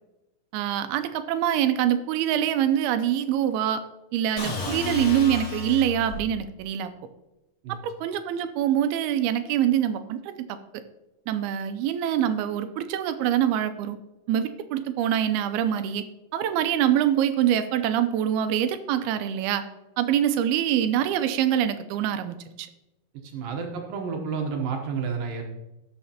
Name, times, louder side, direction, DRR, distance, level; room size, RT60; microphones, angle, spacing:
voice 1, 0.5-3.8 4.1-6.9 7.7-10.6 11.3-14.0 14.3-16.0 16.3-19.6 20.0-22.7, right 10 dB, 90° right, 10 dB, 2.6 m, -25 dB
sound 1, 4.4-6.3, left 4 dB, 35° left, 1.6 m, -32 dB
voice 2, 23.2-25.4, right 5 dB, 70° right, 2 dB, 2.7 m, -30 dB
18.5 x 6.3 x 2.9 m, 0.99 s
omnidirectional pair, 4.4 m